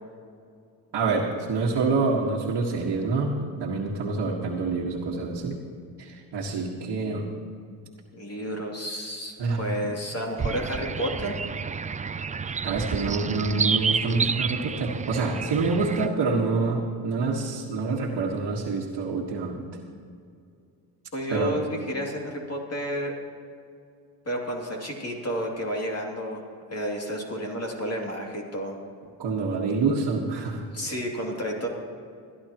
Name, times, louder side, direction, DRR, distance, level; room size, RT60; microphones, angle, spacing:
voice 1, 0.9-5.6 6.0-7.3 9.4-9.9 12.6-19.7 21.3-21.6 29.2-30.7, right 3 dB, 60° right, -5 dB, 1.7 m, -27 dB
voice 2, 8.1-11.4 21.1-23.1 24.3-26.4 26.7-28.7 30.7-31.7, equal, 35° left, -1 dB, 2.9 m, -31 dB
sound 1, 10.4-16.1, right 5 dB, 20° right, 0.4 m, -29 dB
21.0 x 11.5 x 3.0 m, 2.3 s
supercardioid pair, 65°, 44 cm